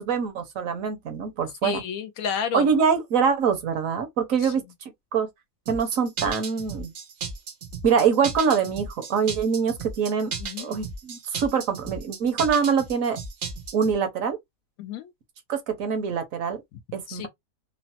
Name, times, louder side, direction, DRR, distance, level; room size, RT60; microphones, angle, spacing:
voice 1, 0.0-1.8 2.5-5.3 5.7-6.9 7.8-10.3 10.6-13.2 13.7-14.4 15.5-16.6 16.9-17.3, right 6 dB, 65° right, 1.1 m, -24 dB
voice 2, 1.6-2.7 4.4-4.5 10.4-10.8 14.8-15.1 17.1-17.3, left 8 dB, 70° left, 1.0 m, -31 dB
sound 1, 5.7-13.9, right 5 dB, 85° right, 0.4 m, -35 dB
3.0 x 2.0 x 2.8 m
omnidirectional pair, 1.6 m